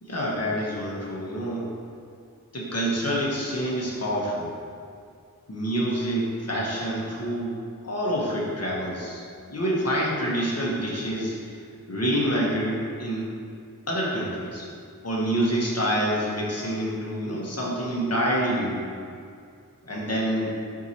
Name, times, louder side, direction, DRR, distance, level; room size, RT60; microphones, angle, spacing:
voice 1, 0.0-1.7 2.5-4.5 5.5-7.6 7.8-11.5 11.9-13.3 13.9-14.7 15.0-18.8 19.8-20.6, equal, 45° left, -4 dB, 1.2 m, -27 dB
4.7 x 4.6 x 4.3 m, 2.3 s
wide cardioid pair, 80°, 35 cm